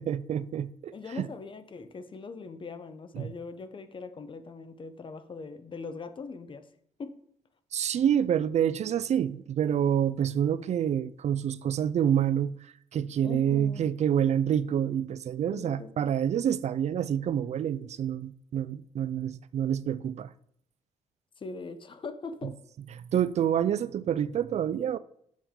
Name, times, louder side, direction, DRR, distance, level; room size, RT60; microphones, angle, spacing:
voice 1, 0.0-1.3 3.2-3.3 7.7-20.3 23.1-25.0, right 9 dB, 55° right, 0.4 m, -27 dB
voice 2, 0.9-6.7 7.0-7.2 13.2-13.9 15.5-16.1 21.4-22.6, left 4 dB, 40° left, 0.8 m, -41 dB
7.2 x 6.9 x 3.7 m
cardioid pair, 110°, 13 cm